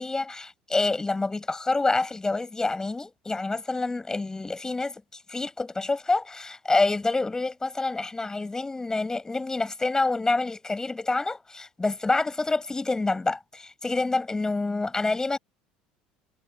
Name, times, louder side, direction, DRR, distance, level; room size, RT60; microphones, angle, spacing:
voice 1, 0.0-15.4, left 3 dB, 15° left, 7.4 m, -27 dB
figure-of-eight pair, 65°, 4 cm